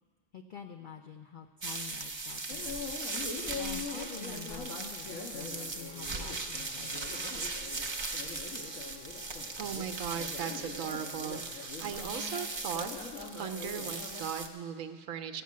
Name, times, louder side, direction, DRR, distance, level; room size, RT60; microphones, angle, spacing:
voice 1, 0.3-2.9 3.2-7.3, left 7 dB, 55° left, 5 dB, 0.6 m, -47 dB
sound 1, 1.6-14.5, right 3 dB, 30° right, 0.6 m, -39 dB
sound 2, 2.5-14.2, left 4 dB, 85° left, 1.5 m, -43 dB
voice 2, 9.6-12.9 13.2-15.4, right 8 dB, 90° right, 7 dB, 1.1 m, -38 dB
15.5 x 5.6 x 8.4 m, 1.5 s
omnidirectional pair, 1.4 m